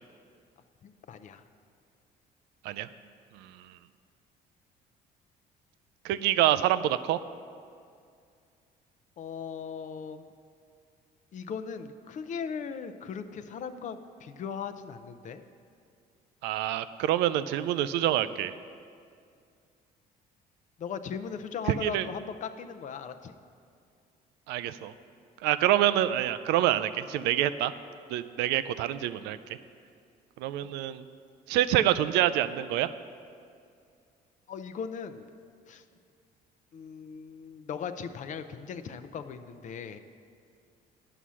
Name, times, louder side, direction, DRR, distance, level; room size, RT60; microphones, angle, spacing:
voice 1, 0.8-1.4 9.2-10.3 11.3-15.4 20.8-23.3 34.5-35.3 35.7-35.8 36.7-40.0, left 6 dB, 45° left, 9 dB, 0.5 m, -38 dB
voice 2, 3.3-3.8 6.0-7.2 16.4-18.5 21.7-22.1 24.5-24.9 25.4-27.7 28.1-29.4 30.4-31.0 31.5-32.9, right 12 dB, 90° right, 13 dB, 0.4 m, -26 dB
9.9 x 5.6 x 6.2 m, 2.3 s
cardioid pair, 110°, 17 cm